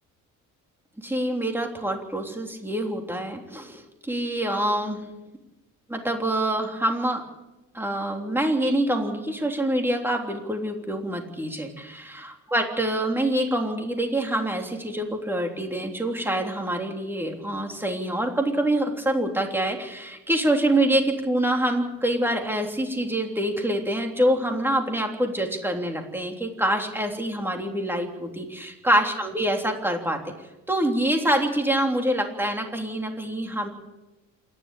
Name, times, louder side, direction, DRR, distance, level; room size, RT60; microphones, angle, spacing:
voice 1, 1.0-5.0 5.9-7.2 7.7-30.2 30.7-33.7, right 1 dB, 5° right, 2 dB, 3.4 m, -26 dB
27.5 x 11.5 x 8.5 m, 1.0 s
cardioid pair, 125°, 34 cm